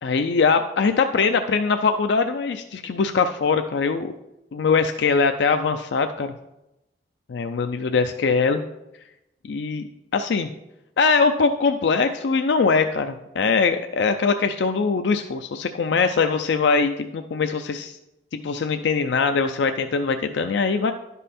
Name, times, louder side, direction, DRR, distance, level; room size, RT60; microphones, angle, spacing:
voice 1, 0.0-4.1 4.5-6.3 7.3-8.6 9.5-9.8 10.1-10.5 11.0-18.0 18.3-20.9, left 4 dB, 80° left, 7 dB, 0.4 m, -22 dB
11.0 x 5.5 x 4.2 m, 0.93 s
head